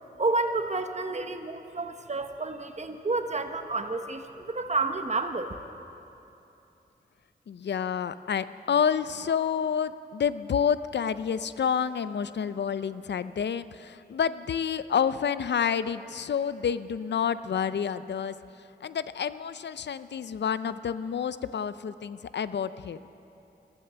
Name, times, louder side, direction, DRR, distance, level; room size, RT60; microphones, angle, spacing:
voice 1, 0.2-5.5, right 3 dB, 40° right, 7 dB, 1.0 m, -30 dB
voice 2, 7.5-18.4 18.8-23.0, left 7 dB, 85° left, 14 dB, 0.4 m, -29 dB
14.0 x 13.5 x 6.8 m, 2.9 s
cardioid pair, 50°, 18 cm